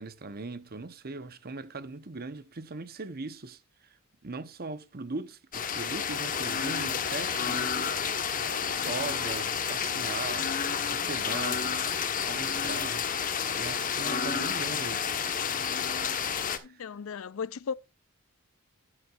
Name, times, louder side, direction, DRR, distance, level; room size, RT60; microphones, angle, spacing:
voice 1, 0.0-3.6 4.2-7.9 8.9-10.6 10.9-11.6 12.3-13.1 13.5-15.0 16.6-16.8, right 3 dB, 45° right, 0.9 m, -39 dB
sound 1, 5.5-16.6, left 7 dB, 40° left, 1.2 m, -30 dB
voice 2, 16.6-17.7, left 6 dB, 70° left, 0.5 m, -36 dB
12.5 x 9.8 x 2.5 m
head